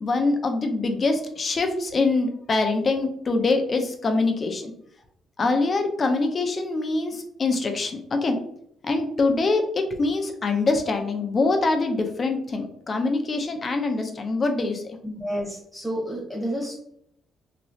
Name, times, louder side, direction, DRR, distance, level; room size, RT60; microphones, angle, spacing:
voice 1, 0.0-4.7 5.4-8.4 8.8-15.0, left 3 dB, 40° left, 5 dB, 0.6 m, -24 dB
voice 2, 15.0-16.7, equal, 10° right, -4 dB, 1.2 m, -30 dB
3.1 x 2.9 x 2.7 m, 0.70 s
cardioid pair, 90°, 0 cm